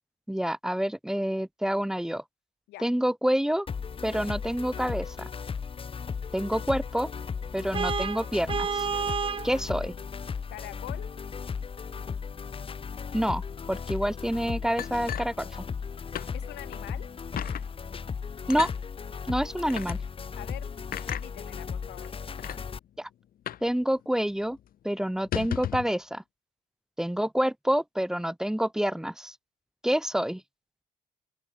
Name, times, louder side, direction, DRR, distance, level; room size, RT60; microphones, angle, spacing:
voice 1, 0.3-2.2 2.8-3.7 4.0-5.3 6.3-7.1 7.5-8.9 9.4-9.9 13.1-13.4 13.7-15.6 18.5-18.7 19.3-20.0 23.0-23.1 23.6-24.6 24.8-26.2 27.0-29.3 29.8-30.4, equal, 5° right, 1.0 m, -27 dB
sound 1, 3.7-22.8, left 6 dB, 30° left, 3.9 m, -36 dB
Vehicle horn car horn honking, 7.7-9.5, right 6 dB, 30° right, 1.3 m, -29 dB
voice 2, 10.5-11.1 16.3-17.1 20.3-22.2, left 18 dB, 85° left, 7.4 m, -44 dB
sound 2, 14.8-15.9 16.1-16.3 16.7-16.8 17.4-17.7 18.5-18.8 19.7-20.0 20.9-21.3 22.0-22.1 22.4-22.6 23.5-23.7 24.0-24.1 24.4-24.6 25.1-25.9, left 11 dB, 60° left, 5.1 m, -34 dB
open air
cardioid pair, 110°, 17 cm